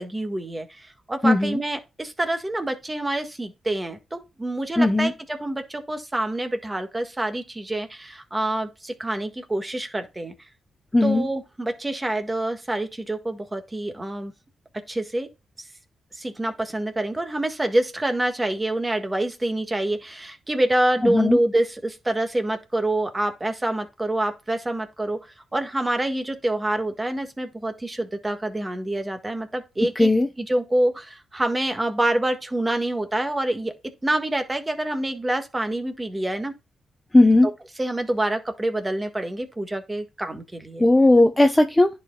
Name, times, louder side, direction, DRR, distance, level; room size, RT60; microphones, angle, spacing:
voice 1, 0.0-10.3 11.0-14.3 14.9-15.3 16.1-25.2 25.5-30.1 30.4-33.7 34.0-36.5 37.4-37.5 37.8-40.9, right 1 dB, 20° right, 1.6 m, -26 dB
voice 2, 1.2-1.6 4.8-5.1 10.9-11.3 21.0-21.4 30.0-30.3 37.1-37.5 40.8-41.9, left 2 dB, 15° left, 0.8 m, -17 dB
10.5 x 4.8 x 2.2 m
cardioid pair, 75°, 0 cm